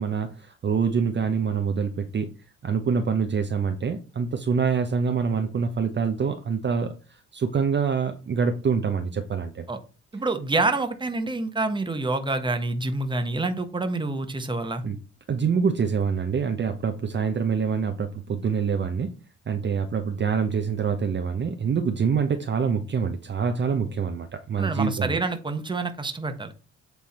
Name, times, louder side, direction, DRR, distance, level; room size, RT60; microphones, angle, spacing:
voice 1, 0.0-2.3 2.6-9.6 14.8-15.0 15.3-19.1 19.5-25.2, right 6 dB, 40° right, 6 dB, 0.7 m, -25 dB
voice 2, 10.1-14.8 24.6-26.5, right 2 dB, 15° right, 7 dB, 1.1 m, -27 dB
7.8 x 3.5 x 4.2 m, 0.33 s
cardioid pair, 90°, 30 cm